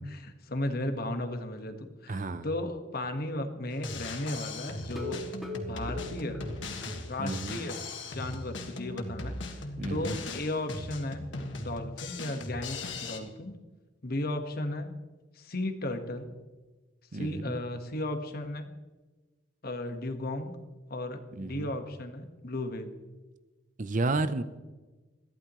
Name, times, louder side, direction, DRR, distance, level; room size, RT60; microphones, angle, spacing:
voice 1, 0.0-5.3 5.7-6.4 7.1-9.6 9.9-11.3 11.6-13.6 14.0-14.9 15.3-16.3 17.1-18.7 19.6-20.6 20.9-22.9, left 1 dB, 55° left, 7 dB, 1.5 m, -35 dB
voice 2, 2.1-2.5 7.2-7.6 9.8-10.2 17.1-17.5 21.4-21.7 23.8-24.4, right 2 dB, 45° right, 12 dB, 0.7 m, -31 dB
Drum kit, 3.7-13.2, left 2 dB, 80° left, 1.7 m, -38 dB
sound 1, 4.8-7.4 7.7-7.8 8.2-8.3 8.7-8.8, left 2 dB, ahead, 2.3 m, -41 dB
21.5 x 15.0 x 3.1 m, 1.2 s
head